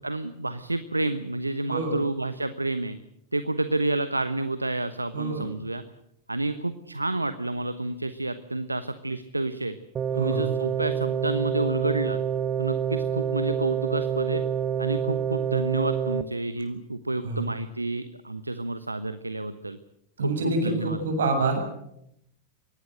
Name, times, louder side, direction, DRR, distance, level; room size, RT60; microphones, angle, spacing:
voice 1, 0.0-3.0 3.3-5.8 6.3-9.7 10.2-12.2 12.6-14.4 14.8-19.8 20.2-21.0, right 2 dB, 85° right, 12 dB, 1.1 m, -29 dB
voice 2, 1.7-2.0 5.1-5.5 10.1-10.6 17.2-17.5 20.2-21.8, right 2 dB, 65° right, 5 dB, 7.5 m, -27 dB
sound 1, 10.0-16.2, right 8 dB, 25° right, 1.3 m, -27 dB
24.5 x 18.5 x 7.9 m, 0.77 s
figure-of-eight pair, 90°, 0 cm